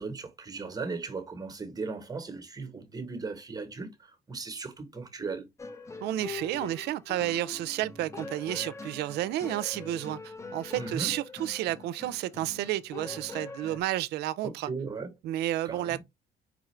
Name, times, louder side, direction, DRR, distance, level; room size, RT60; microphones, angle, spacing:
voice 1, 0.0-5.5 10.8-11.1 14.4-15.1 15.6-16.0, right 4 dB, 20° right, 1.0 m, -37 dB
sound 1, 5.6-13.8, left 4 dB, 15° left, 0.6 m, -43 dB
voice 2, 6.0-14.7 15.2-16.0, right 14 dB, 75° right, 0.4 m, -31 dB
4.9 x 2.4 x 3.1 m
cardioid pair, 110°, 17 cm